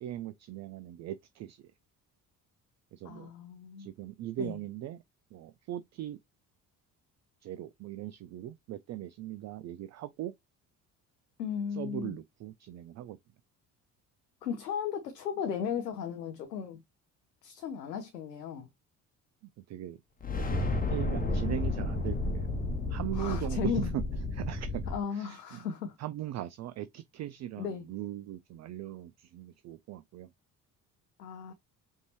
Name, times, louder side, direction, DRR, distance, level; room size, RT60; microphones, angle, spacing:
voice 1, 0.0-1.6 2.9-3.3 3.8-5.0 5.3-6.2 7.4-10.3 11.7-13.2 19.7-20.0 20.6-22.5 22.7-24.0 24.3-25.7 26.0-30.3, right 13 dB, 35° right, 0.4 m, -39 dB
voice 2, 3.0-3.9 4.4-4.6 11.4-12.2 14.4-16.8 17.4-18.7 21.2-21.4 23.1-23.9 24.9-26.0 27.6-27.8 31.2-31.5, left 7 dB, 85° left, 0.7 m, -36 dB
sound 1, 20.2-25.0, left 2 dB, 20° left, 1.2 m, -32 dB
5.2 x 2.8 x 3.0 m
figure-of-eight pair, 50°, 48 cm